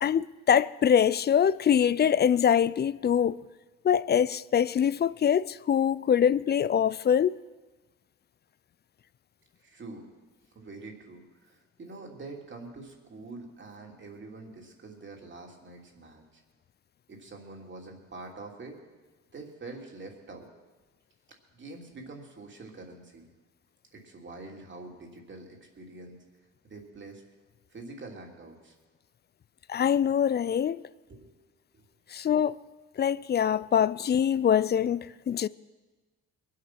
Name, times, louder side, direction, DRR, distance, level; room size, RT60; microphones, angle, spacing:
voice 1, 0.0-3.4 3.8-7.4 29.7-30.8 32.1-32.6 33.0-35.5, left 8 dB, 35° left, 0.4 m, -24 dB
voice 2, 9.6-10.1 10.5-16.4 17.1-18.7 19.3-20.5 21.5-23.3 23.9-26.2 26.6-27.2 27.7-28.7 31.1-31.3 31.7-31.8, right 3 dB, 40° right, 3.0 m, -45 dB
22.5 x 8.8 x 6.0 m
cardioid pair, 90°, 30 cm